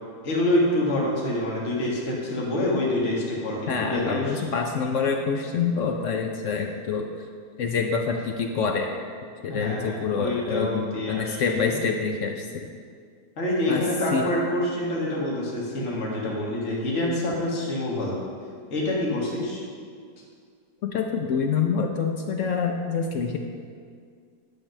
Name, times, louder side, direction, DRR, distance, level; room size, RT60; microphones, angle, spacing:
voice 1, 0.2-4.2 9.5-11.8 13.4-18.2 18.7-19.6, left 1 dB, 45° left, -5 dB, 1.8 m, -26 dB
voice 2, 3.7-7.1 7.6-8.9 9.4-12.7 13.7-13.8 14.1-14.3 20.8-23.4, left 5 dB, 65° left, 3 dB, 0.7 m, -26 dB
10.5 x 4.1 x 6.3 m, 2.1 s
omnidirectional pair, 1.8 m